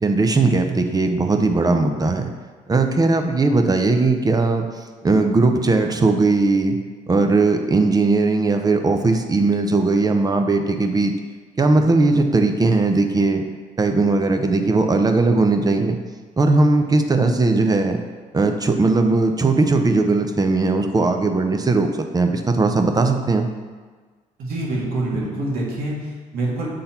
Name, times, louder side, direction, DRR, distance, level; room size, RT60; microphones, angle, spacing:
voice 1, 0.0-2.3 2.7-4.7 5.0-6.8 7.1-11.1 11.6-13.4 13.8-16.0 16.4-18.0 18.3-21.9 22.1-23.5, right 3 dB, 25° right, 5 dB, 0.7 m, -18 dB
voice 2, 24.4-26.7, right 2 dB, 80° right, -4 dB, 1.8 m, -26 dB
6.8 x 3.8 x 4.4 m, 1.4 s
supercardioid pair, 75°, 15 cm